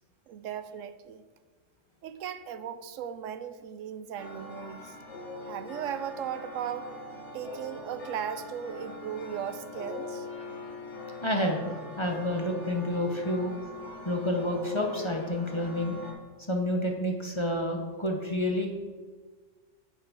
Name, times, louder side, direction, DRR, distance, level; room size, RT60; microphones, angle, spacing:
voice 1, 0.3-1.2 2.0-5.0 5.4-6.9 7.3-10.3, right 8 dB, 85° right, 12 dB, 1.0 m, -37 dB
sound 1, 4.2-16.1, left 2 dB, 65° left, 1.7 m, -42 dB
voice 2, 11.2-13.5 14.0-16.0 16.5-18.7, left 1 dB, 25° left, 2 dB, 0.8 m, -29 dB
10.5 x 7.4 x 3.6 m, 1.4 s
omnidirectional pair, 1.3 m